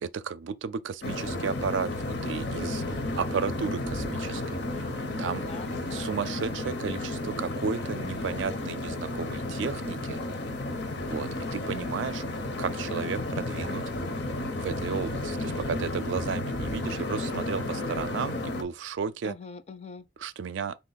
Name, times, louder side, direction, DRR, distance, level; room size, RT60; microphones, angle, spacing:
voice 1, 0.0-2.8 3.2-4.8 5.2-5.4 5.9-10.2 11.0-12.2 12.6-13.8 14.3-19.3 20.2-20.8, right 6 dB, 90° right, 0.4 m, -33 dB
sound 1, 1.0-18.6, left 2 dB, 65° left, 0.8 m, -32 dB
voice 2, 5.4-7.1 19.2-20.0, left 4 dB, 35° left, 0.4 m, -45 dB
3.8 x 2.9 x 4.0 m
head